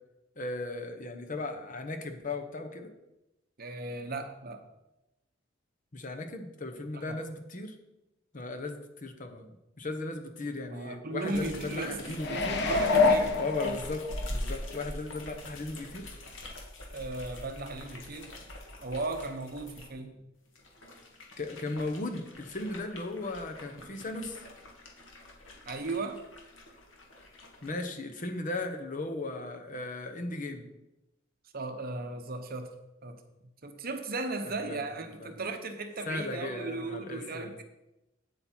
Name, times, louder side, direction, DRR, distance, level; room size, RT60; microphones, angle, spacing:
voice 1, 0.4-2.9 5.9-7.7 8.3-9.5 9.8-12.6 13.1-16.1 21.4-24.4 27.6-30.7 34.5-34.8 35.2-35.3 36.1-37.6, left 2 dB, 40° left, 6 dB, 1.0 m, -37 dB
voice 2, 3.6-4.6 6.9-7.2 10.7-13.4 13.6-13.8 16.9-18.3 18.8-20.2 25.7-26.2 31.5-32.7 33.0-33.2 33.6-37.6, right 3 dB, 50° right, 7 dB, 1.0 m, -36 dB
sound 1, 11.3-19.9 20.5-27.8, left 1 dB, 80° left, 1.8 m, -44 dB
sound 2, 12.2-14.3 14.8-14.9, left 3 dB, 60° left, 1.0 m, -26 dB
8.8 x 8.3 x 4.5 m, 0.93 s
head